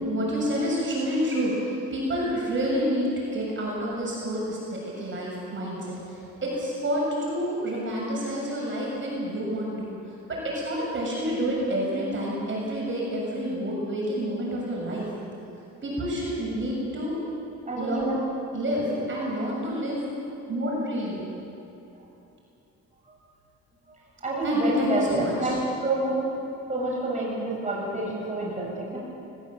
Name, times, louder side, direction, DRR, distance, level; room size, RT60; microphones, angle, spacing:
voice 1, 0.0-9.9 10.3-15.1 15.8-17.2 17.8-18.0 18.5-20.0 20.4-21.2 24.4-25.6, equal, 40° right, -4 dB, 7.3 m, -28 dB
voice 2, 17.7-18.2 24.2-26.2 26.6-29.0, right 2 dB, 25° right, -4 dB, 7.6 m, -28 dB
20.5 x 20.5 x 7.8 m, 2.8 s
cardioid pair, 90°, 30 cm